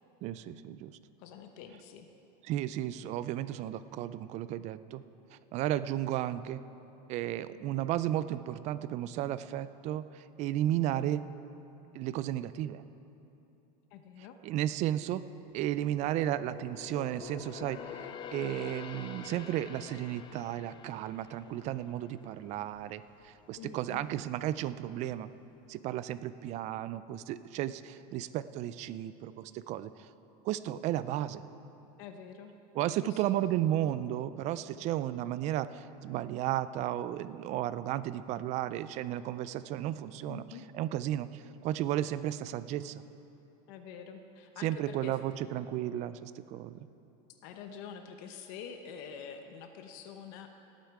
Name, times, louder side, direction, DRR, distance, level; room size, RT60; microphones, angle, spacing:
voice 1, 0.2-1.0 2.5-5.0 5.5-6.6 7.1-11.3 11.9-12.8 14.4-15.2 15.5-25.3 25.7-29.9 30.4-31.4 32.7-40.4 40.7-43.0 44.6-46.7, right 12 dB, 35° right, 15 dB, 0.4 m, -34 dB
voice 2, 1.2-2.1 13.9-14.4 23.6-24.1 32.0-32.5 33.0-33.4 40.2-40.7 43.7-45.2 47.4-50.5, left 7 dB, 55° left, 6 dB, 0.9 m, -46 dB
sound 1, 15.4-22.9 23.3-23.5 24.1-24.8 25.1-25.2, left 7 dB, 25° left, 0.5 m, -47 dB
18.5 x 8.1 x 4.7 m, 2.9 s
supercardioid pair, 145°, 20 cm